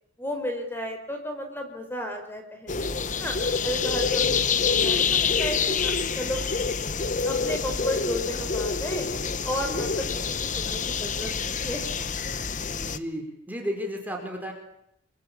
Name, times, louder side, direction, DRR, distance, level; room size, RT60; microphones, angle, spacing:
voice 1, 0.2-3.3 3.6-6.4 7.2-9.0 9.4-11.8, equal, 10° left, 5 dB, 4.9 m, -33 dB
sound 1, 2.7-13.0, left 5 dB, 40° left, 1.1 m, -27 dB
voice 2, 4.2-4.5 9.6-10.0 11.9-12.0 12.8-14.5, equal, 10° right, 2 dB, 4.8 m, -34 dB
26.5 x 25.0 x 8.7 m, 0.77 s
head